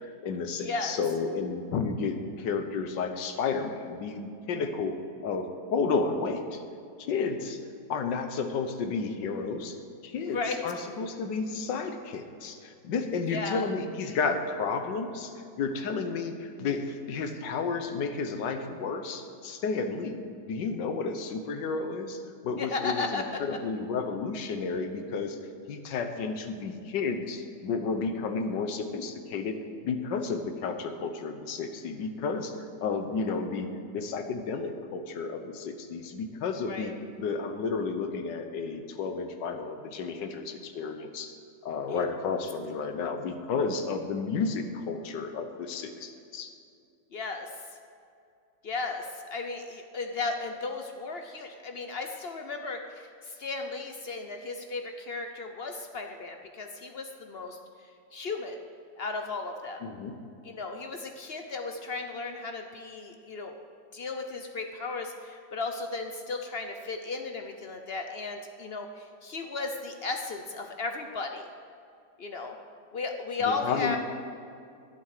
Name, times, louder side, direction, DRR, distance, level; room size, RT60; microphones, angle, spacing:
voice 1, 0.0-5.0 5.2-6.6 7.0-7.6 7.9-9.8 10.0-20.2 20.5-25.4 25.7-29.6 29.8-32.5 32.8-33.7 33.9-36.9 37.2-41.3 41.6-46.5 59.8-60.2 73.4-74.0, left 4 dB, 80° left, 6 dB, 1.6 m, -32 dB
voice 2, 0.6-0.9 10.3-10.6 13.3-13.7 22.6-23.4 36.6-36.9 41.9-42.0 47.1-47.5 48.6-57.6 58.1-58.6 59.0-59.8 60.4-63.6 63.9-71.5 72.2-72.6 72.9-74.0, left 3 dB, 60° left, 5 dB, 0.6 m, -35 dB
11.5 x 8.5 x 6.6 m, 2.4 s
omnidirectional pair, 1.9 m